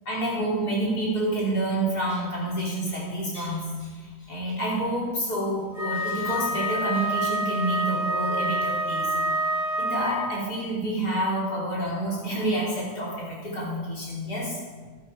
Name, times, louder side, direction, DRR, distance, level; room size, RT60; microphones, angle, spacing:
voice 1, 0.1-9.5 9.8-14.6, right 1 dB, 80° left, -5 dB, 4.1 m, -28 dB
Wind instrument woodwind instrument, 5.7-10.4, right 1 dB, 10° left, 3.0 m, -27 dB
11.5 x 11.5 x 4.5 m, 1.4 s
omnidirectional pair, 1.7 m